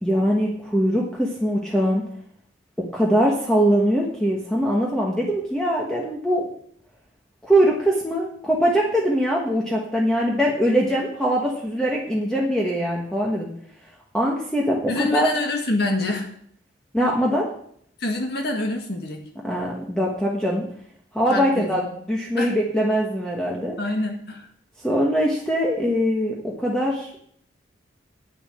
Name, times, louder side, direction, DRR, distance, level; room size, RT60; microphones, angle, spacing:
voice 1, 0.0-2.0 2.8-6.5 7.4-13.5 14.1-15.3 16.9-17.5 19.4-20.6 21.1-21.8 22.1-23.7 24.8-27.2, equal, 5° left, -3 dB, 1.3 m, -22 dB
voice 2, 14.9-16.3 18.0-19.2 21.3-22.0 22.4-22.6 23.8-24.5, left 2 dB, 55° left, 3 dB, 1.7 m, -26 dB
8.7 x 6.8 x 8.6 m, 0.65 s
head